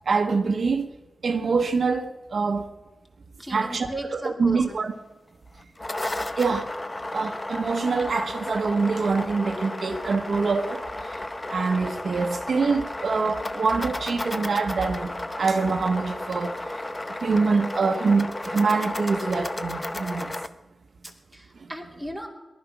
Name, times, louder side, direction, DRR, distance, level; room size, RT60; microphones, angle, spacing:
voice 1, 0.1-0.9 1.2-2.7 3.5-4.9 6.4-6.8 7.1-11.2 11.5-16.8 17.2-20.3 21.6-21.7, right 4 dB, 65° right, 1.1 m, -25 dB
voice 2, 3.4-4.9 11.1-11.5 21.0-22.3, right 1 dB, 5° left, 2.8 m, -37 dB
sound 1, 5.6-20.5, left 1 dB, 20° left, 0.8 m, -33 dB
19.0 x 11.5 x 6.0 m
wide cardioid pair, 95°, 0 cm